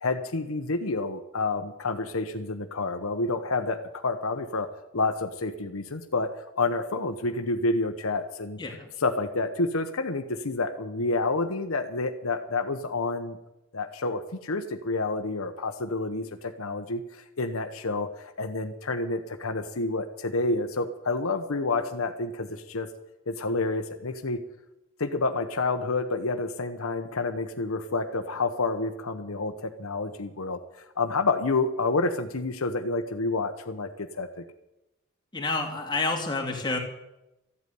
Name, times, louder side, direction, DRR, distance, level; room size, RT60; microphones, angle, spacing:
voice 1, 0.0-6.3 6.6-8.6 9.0-13.4 13.7-22.9 23.3-24.4 25.0-30.6 31.0-34.4, left 3 dB, 80° left, 7 dB, 1.0 m, -29 dB
voice 2, 8.6-8.9 35.3-36.8, left 3 dB, 20° left, 1 dB, 2.7 m, -29 dB
14.0 x 8.5 x 9.4 m, 0.92 s
head